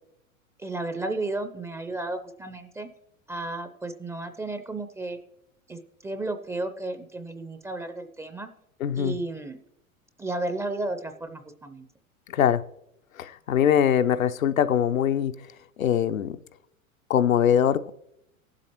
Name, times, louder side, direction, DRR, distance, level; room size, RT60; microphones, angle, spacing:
voice 1, 0.6-2.9 3.3-5.2 5.7-8.5 9.0-9.6 10.2-11.9, right 2 dB, 5° right, 8 dB, 0.4 m, -33 dB
voice 2, 8.8-9.2 12.3-12.6 13.1-15.5 15.8-16.4 17.1-17.9, left 9 dB, 75° left, 10 dB, 0.6 m, -22 dB
18.5 x 7.7 x 3.0 m, 0.82 s
figure-of-eight pair, 90°, 41 cm